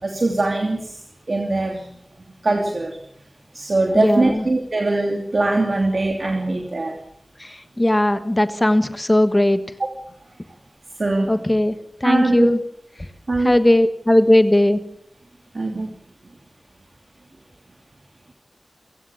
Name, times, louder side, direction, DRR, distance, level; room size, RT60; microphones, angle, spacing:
voice 1, 0.0-1.0 1.3-1.9 2.4-3.0 3.5-7.0 11.0-11.4 12.0-12.5 13.3-13.6 15.5-15.9, right 2 dB, 65° right, 2 dB, 2.8 m, -21 dB
voice 2, 3.9-4.4 7.4-9.6 11.3-11.7 12.0-12.6 13.4-14.8, left 1 dB, 25° left, 10 dB, 1.4 m, -17 dB
29.5 x 16.0 x 7.1 m, 0.74 s
wide cardioid pair, 45°, 0 cm